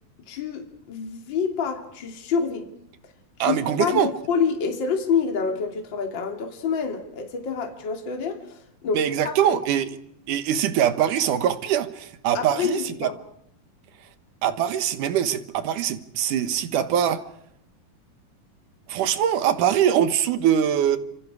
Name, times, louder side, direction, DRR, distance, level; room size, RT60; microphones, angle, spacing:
voice 1, 0.3-2.7 3.4-8.6 8.8-9.6 12.3-13.1, left 6 dB, 35° left, 3.1 m, -27 dB
voice 2, 3.4-4.1 8.9-9.9 10.3-13.1 14.4-17.2 18.9-21.0, right 10 dB, 70° right, 2.7 m, -23 dB
29.5 x 27.0 x 4.8 m
omnidirectional pair, 4.1 m